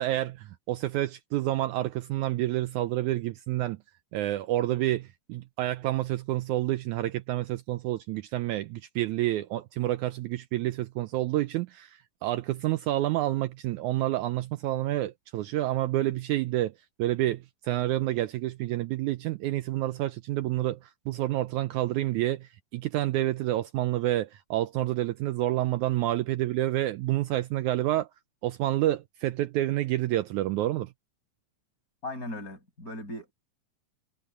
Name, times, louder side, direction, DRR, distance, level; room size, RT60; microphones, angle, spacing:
voice 1, 0.0-3.8 4.1-16.7 17.0-28.1 28.4-30.9, right 15 dB, 75° right, 1.9 m, -29 dB
voice 2, 32.0-33.3, left 1 dB, 25° left, 7.2 m, -38 dB
omnidirectional pair, 3.7 m